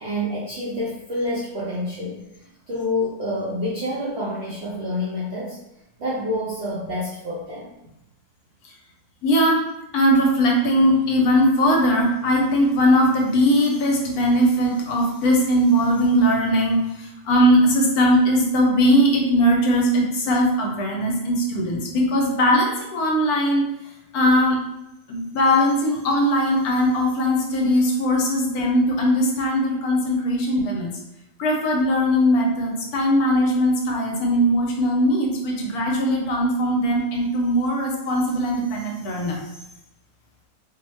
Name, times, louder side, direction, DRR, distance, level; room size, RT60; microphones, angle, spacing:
voice 1, 0.0-2.2 2.7-5.6 6.0-7.8 32.5-32.6, left 1 dB, 65° right, -7 dB, 0.6 m, -28 dB
voice 2, 9.2-9.6 9.9-16.9 17.3-23.6 24.1-24.6 25.1-30.9 31.4-39.4, equal, 75° left, 0 dB, 1.0 m, -20 dB
2.7 x 2.1 x 3.1 m, 0.87 s
omnidirectional pair, 1.7 m